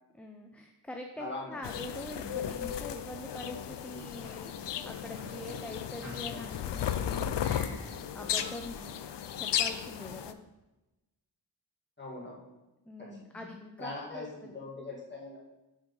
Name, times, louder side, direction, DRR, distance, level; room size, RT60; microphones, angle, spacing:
voice 1, 0.1-9.0 9.4-10.4 12.9-14.5, left 1 dB, 5° left, 3 dB, 0.4 m, -44 dB
voice 2, 1.2-1.7 12.0-12.5 13.0-13.1 13.3-13.5 13.8-15.4, left 2 dB, 25° left, -5 dB, 1.6 m, -41 dB
sound 1, 1.6-10.3, left 9 dB, 75° left, 0.5 m, -35 dB
sound 2, 3.8-8.8, right 1 dB, 40° right, 2.0 m, -52 dB
7.2 x 5.2 x 3.9 m, 1.0 s
wide cardioid pair, 115°, 42 cm